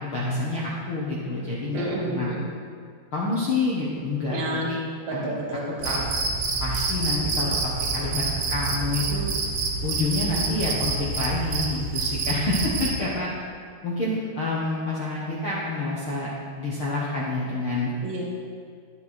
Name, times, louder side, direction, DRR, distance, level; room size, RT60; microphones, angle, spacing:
voice 1, 0.0-2.3 3.1-4.8 5.1-5.3 5.8-6.0 6.6-8.2 8.5-9.3 9.8-13.3 13.8-16.3 16.6-17.9, left 2 dB, 70° left, -6 dB, 1.2 m, -28 dB
voice 2, 1.7-2.5 4.3-4.7 5.1-6.0 18.0-18.2, right 1 dB, 45° right, -4 dB, 3.0 m, -30 dB
Cricket, 5.8-13.0, right 3 dB, 70° right, 2.8 m, -27 dB
12.5 x 9.4 x 4.4 m, 2.2 s
omnidirectional pair, 4.7 m